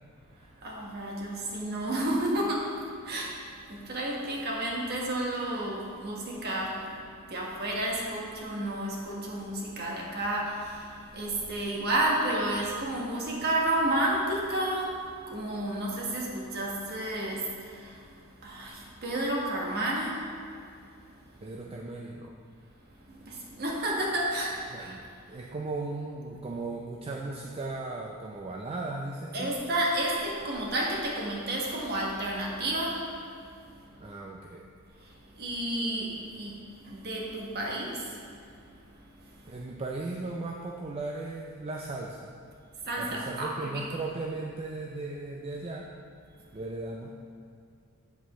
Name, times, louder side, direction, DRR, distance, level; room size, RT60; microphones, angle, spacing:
voice 1, 0.6-2.7 3.0-3.4 3.7-7.0 7.3-18.1 18.4-20.2 23.1-25.0 29.3-33.1 35.4-38.2 42.9-43.8, right 1 dB, 45° right, -2 dB, 1.3 m, -31 dB
voice 2, 21.4-22.3 24.7-25.0 25.3-29.6 34.0-34.7 39.5-42.3 43.0-45.9 46.5-47.1, right 2 dB, 25° right, -1 dB, 0.4 m, -37 dB
8.2 x 7.3 x 3.1 m, 2.3 s
head